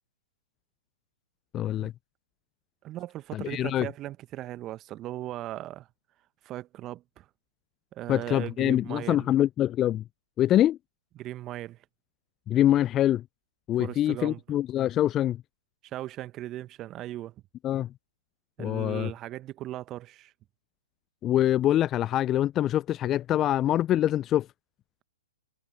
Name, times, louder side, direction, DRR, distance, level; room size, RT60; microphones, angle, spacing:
voice 1, 1.5-1.9 3.3-3.9 8.1-10.0 10.4-10.8 12.5-13.2 13.7-15.4 17.6-17.9 18.6-19.1 21.2-24.5, left 12 dB, 25° left, 0.3 m, -24 dB
voice 2, 2.8-5.9 6.4-7.3 7.9-9.3 11.2-11.8 13.8-14.4 15.8-17.3 18.6-20.3, right 14 dB, 25° right, 1.2 m, -38 dB
figure-of-eight pair, 120°, 0 cm